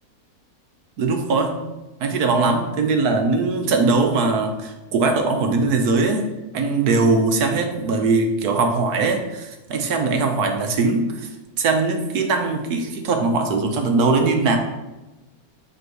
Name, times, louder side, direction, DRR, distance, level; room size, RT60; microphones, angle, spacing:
voice 1, 1.0-1.6 2.0-6.2 6.5-11.0 11.6-14.6, right 3 dB, 85° right, 4 dB, 1.4 m, -20 dB
7.8 x 3.7 x 4.7 m, 1.1 s
omnidirectional pair, 1.6 m